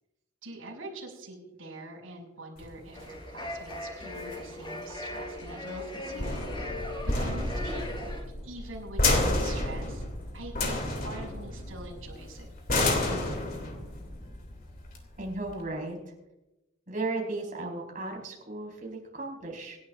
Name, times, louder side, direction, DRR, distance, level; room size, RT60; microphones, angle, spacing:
voice 1, 0.4-7.8 8.4-10.0 10.3-12.5, right 2 dB, 75° right, -1 dB, 5.9 m, -44 dB
sound 1, 2.6-15.6, left 2 dB, 45° left, 2.7 m, -31 dB
sound 2, 2.9-8.2, left 1 dB, 25° left, 3.8 m, -39 dB
voice 2, 15.2-16.0 16.9-19.8, right 2 dB, 40° right, -1 dB, 4.5 m, -35 dB
26.5 x 11.5 x 2.5 m, 0.99 s
head